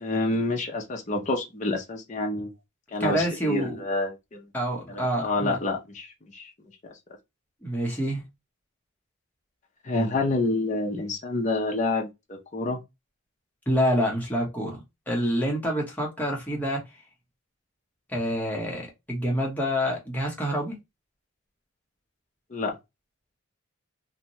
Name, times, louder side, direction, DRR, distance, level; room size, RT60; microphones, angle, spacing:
voice 1, 0.0-2.5 2.9-4.5 4.9-6.5 9.8-12.8 22.5-22.7, left 2 dB, 35° left, 0.5 m, -28 dB
voice 2, 3.0-3.8 4.5-5.6 7.6-8.2 13.7-16.8 18.1-20.8, equal, 10° left, 0.8 m, -27 dB
2.6 x 2.2 x 2.9 m
head